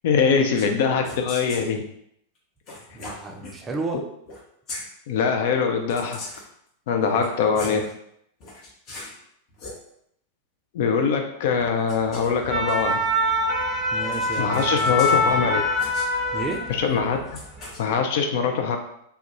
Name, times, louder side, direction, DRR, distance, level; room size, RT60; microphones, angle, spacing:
voice 1, 0.0-1.8 3.4-3.5 5.1-6.2 6.9-7.9 10.7-13.0 14.4-15.6 16.7-17.2 17.8-18.8, left 6 dB, 50° left, 4 dB, 0.3 m, -23 dB
sound 1, 0.5-0.7 1.0-1.7 2.7-3.6 4.2-4.4 4.7-4.9 5.9-6.5 7.1-7.9 8.4-9.2 9.5-9.8 11.6-13.1 14.1-15.3 15.8-16.1 17.3-17.8, left 2 dB, 35° left, 0.7 m, -39 dB
voice 2, 2.9-4.0 7.0-7.8 13.9-15.6 16.3-16.6, right 3 dB, 20° right, 2 dB, 0.4 m, -33 dB
sound 2, 12.2-17.0 17.4-17.6, left 1 dB, ahead, 0.8 m, -24 dB
2.3 x 2.1 x 2.8 m, 0.73 s
figure-of-eight pair, 90°, 0 cm